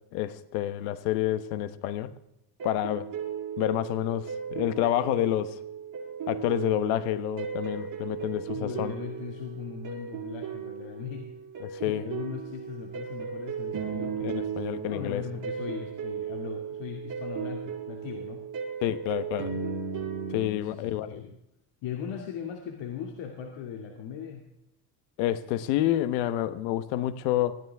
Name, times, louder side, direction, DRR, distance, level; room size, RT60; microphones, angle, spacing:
voice 1, 0.1-2.1 2.6-3.1 3.6-5.5 6.3-8.9 11.6-12.0 14.2-15.2 18.8-19.5 20.3-21.2 25.2-27.6, left 13 dB, 85° left, 1.2 m, -28 dB
sound 1, 2.6-20.5, right 7 dB, 40° right, 6.8 m, -36 dB
voice 2, 8.3-11.3 11.7-18.4 20.5-21.3 21.8-24.5, left 7 dB, 65° left, 2.4 m, -39 dB
20.5 x 15.5 x 3.5 m
supercardioid pair, 90°, 46 cm